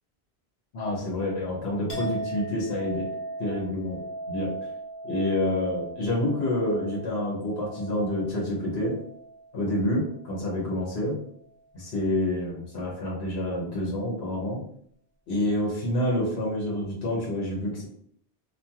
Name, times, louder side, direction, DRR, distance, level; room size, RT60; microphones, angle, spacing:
voice 1, 0.7-3.1 3.4-4.0 4.3-4.5 5.0-8.9 9.5-11.2 11.7-14.6 15.3-17.9, left 1 dB, 70° left, -4 dB, 1.1 m, -28 dB
Chink clink, 1.9-9.6 9.9-10.6, right 2 dB, 45° left, 0.8 m, -38 dB
2.5 x 2.4 x 2.8 m, 0.65 s
omnidirectional pair, 1.1 m